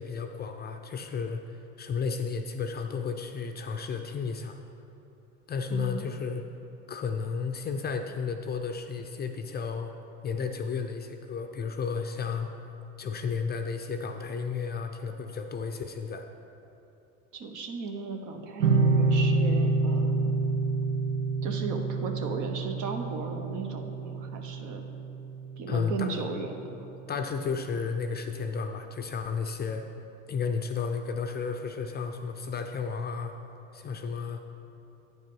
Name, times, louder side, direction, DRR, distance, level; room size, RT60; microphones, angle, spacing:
voice 1, 0.0-4.6 5.5-6.4 6.9-9.9 10.2-12.5 13.0-16.2 25.7-26.1 27.1-29.9 30.3-33.3 33.7-34.4, left 5 dB, 25° left, 6 dB, 0.5 m, -33 dB
voice 2, 5.7-6.1 17.3-20.4 21.4-24.8 25.6-26.9, right 4 dB, 55° right, 4 dB, 1.1 m, -36 dB
sound 1, 18.6-25.8, right 3 dB, 75° right, 0.9 m, -27 dB
9.3 x 5.2 x 5.5 m, 2.8 s
hypercardioid pair, 80°, 37 cm